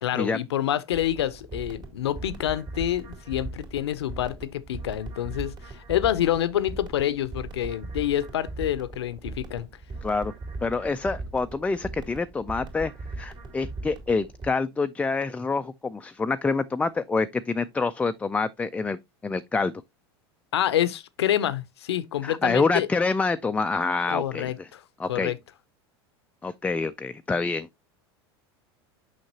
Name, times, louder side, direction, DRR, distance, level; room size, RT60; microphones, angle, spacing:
voice 1, 0.0-9.7 20.5-22.9 24.1-24.8 25.1-25.4, left 11 dB, 90° left, 0.6 m, -27 dB
sound 1, 0.9-14.5, right 3 dB, 35° right, 2.5 m, -39 dB
voice 2, 10.6-12.9 13.2-19.7 22.2-24.7 25.0-25.3 26.4-27.7, left 4 dB, 10° left, 0.3 m, -27 dB
6.2 x 5.7 x 2.8 m
hypercardioid pair, 100°, 13 cm